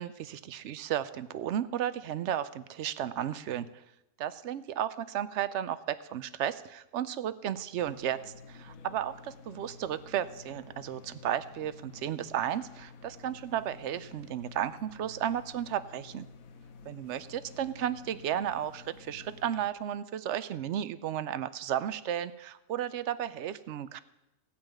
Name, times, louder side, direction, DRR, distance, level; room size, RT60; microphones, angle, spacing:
voice 1, 0.0-3.7 4.2-16.3 16.9-24.0, right 10 dB, 65° right, 14 dB, 0.7 m, -34 dB
sound 1, 7.8-19.7, left 4 dB, 60° left, 1.2 m, -51 dB
16.5 x 5.6 x 8.8 m, 0.92 s
omnidirectional pair, 1.8 m